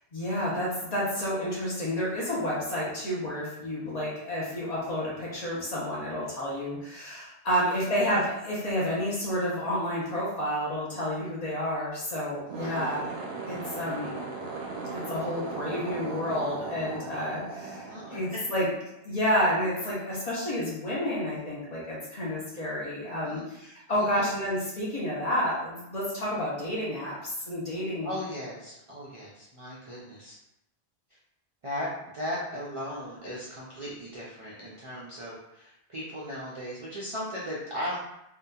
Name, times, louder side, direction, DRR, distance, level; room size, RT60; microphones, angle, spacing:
voice 1, 0.1-13.1 13.5-14.2 14.9-18.7 19.0-28.1, equal, 45° left, -6 dB, 0.7 m, -30 dB
voice 2, 7.5-7.9 12.5-13.0 13.8-13.9 17.6-18.4 23.0-23.4 23.9-24.2 28.0-30.4 31.6-31.9 32.1-38.0, equal, 45° right, -7 dB, 0.4 m, -37 dB
sound 1, 12.4-18.9, right 3 dB, 80° right, 0.8 m, -37 dB
2.7 x 2.2 x 2.3 m, 0.86 s
omnidirectional pair, 1.0 m